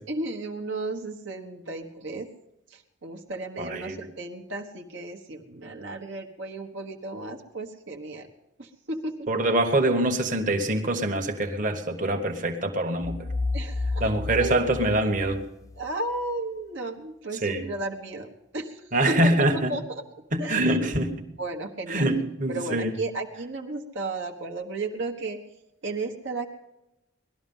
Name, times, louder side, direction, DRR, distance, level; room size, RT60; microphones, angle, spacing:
voice 1, 0.1-2.3 2.7-8.3 8.6-9.3 13.5-14.6 15.8-18.3 18.5-20.0 20.4-20.8 21.4-22.1 22.5-25.4 25.8-26.5, right 2 dB, 65° right, 2 dB, 1.2 m, -34 dB
voice 2, 3.6-4.0 9.3-13.3 14.0-15.4 17.4-17.6 18.9-19.7 20.3-21.1 21.9-22.9, right 1 dB, 40° right, 4 dB, 1.4 m, -24 dB
sound 1, 13.0-15.8, left 3 dB, 15° left, 0.4 m, -31 dB
18.5 x 12.5 x 5.5 m, 0.92 s
head